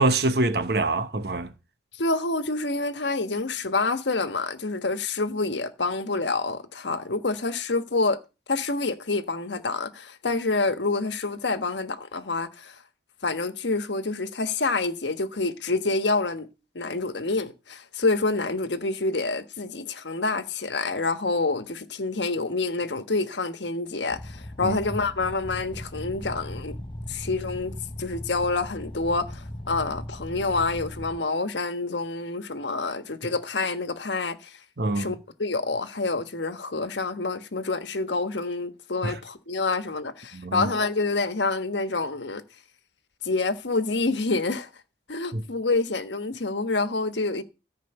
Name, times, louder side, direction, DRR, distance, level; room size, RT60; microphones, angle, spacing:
voice 1, 0.0-1.5 24.6-24.8 34.8-35.1 39.0-39.1 40.3-40.7 45.3-45.4, right 2 dB, 65° right, 1.1 m, -25 dB
voice 2, 1.9-8.2 8.5-12.8 13.2-16.5 16.7-26.8 27.1-27.7 28.0-34.6 34.9-42.4 43.2-44.7 45.1-47.4, left 3 dB, 85° left, 1.3 m, -27 dB
sound 1, 24.1-31.2, left 1 dB, 25° left, 1.0 m, -38 dB
14.0 x 5.3 x 7.9 m
head